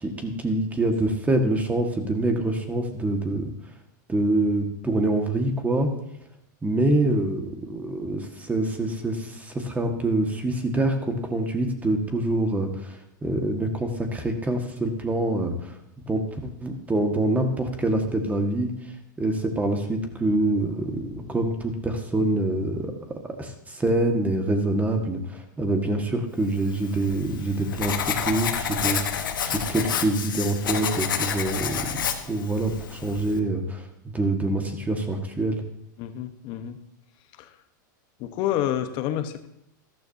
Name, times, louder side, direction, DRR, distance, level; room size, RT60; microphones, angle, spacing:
voice 1, 0.0-3.5 4.1-5.9 6.6-15.7 16.1-16.2 16.6-18.7 19.2-22.9 23.2-35.6, right 2 dB, 15° right, 5 dB, 1.8 m, -25 dB
Writing, 26.7-33.4, left 8 dB, 85° left, 1.2 m, -29 dB
voice 2, 36.0-36.8 37.3-37.6 38.2-39.5, left 11 dB, 50° left, 9 dB, 1.1 m, -29 dB
14.0 x 13.0 x 2.8 m, 0.77 s
hypercardioid pair, 115°, 11 cm